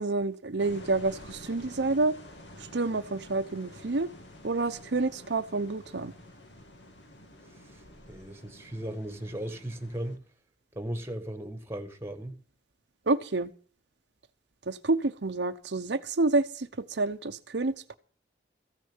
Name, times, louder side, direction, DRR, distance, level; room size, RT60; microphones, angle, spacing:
voice 1, 0.0-2.1 2.7-4.1 4.4-6.1 13.1-13.5 14.7-17.9, right 3 dB, 70° right, 0.8 m, -28 dB
sound 1, 0.6-10.2, left 1 dB, 80° left, 2.3 m, -49 dB
voice 2, 8.1-10.2 10.7-12.3, right 1 dB, 15° right, 1.3 m, -36 dB
14.5 x 6.5 x 8.8 m
head